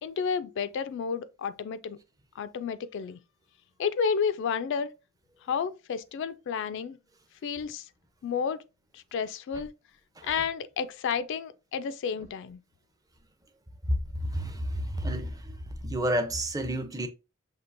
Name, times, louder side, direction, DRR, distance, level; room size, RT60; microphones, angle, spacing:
voice 1, 0.0-2.0 2.4-3.2 3.8-4.9 5.5-7.0 7.4-7.9 8.2-8.6 8.9-9.7 10.2-12.6, left 6 dB, 60° left, 0.3 m, -31 dB
voice 2, 13.8-17.1, equal, 15° right, 0.5 m, -30 dB
5.9 x 2.8 x 2.5 m
head